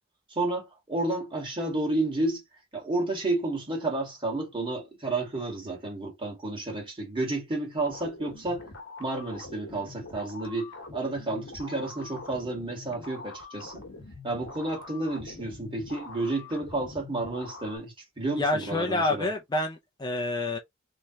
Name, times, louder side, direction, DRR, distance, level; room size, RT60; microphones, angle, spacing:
voice 1, 0.3-2.4 2.7-8.6 9.0-13.8 14.2-19.3, right 2 dB, 25° right, 1.6 m, -31 dB
sound 1, 7.8-17.8, left 3 dB, 70° left, 1.1 m, -44 dB
voice 2, 18.3-20.6, left 2 dB, 20° left, 0.5 m, -28 dB
3.4 x 3.1 x 2.8 m
head